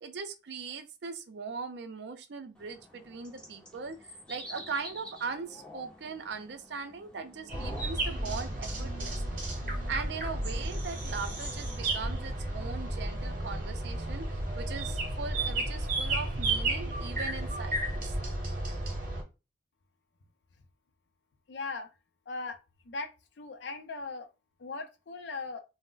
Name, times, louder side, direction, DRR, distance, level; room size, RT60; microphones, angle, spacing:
voice 1, 0.0-4.0 4.3-9.4 9.9-18.1, right 5 dB, 65° right, 0.4 m, -40 dB
sound 1, 2.6-12.1, left 1 dB, 5° left, 0.5 m, -50 dB
sound 2, 7.5-19.2, right 2 dB, 45° right, 0.9 m, -33 dB
voice 2, 21.5-21.9 22.3-22.6 22.9-23.1 23.4-24.3 24.6-25.6, left 3 dB, 65° left, 0.5 m, -38 dB
2.4 x 2.0 x 3.8 m
head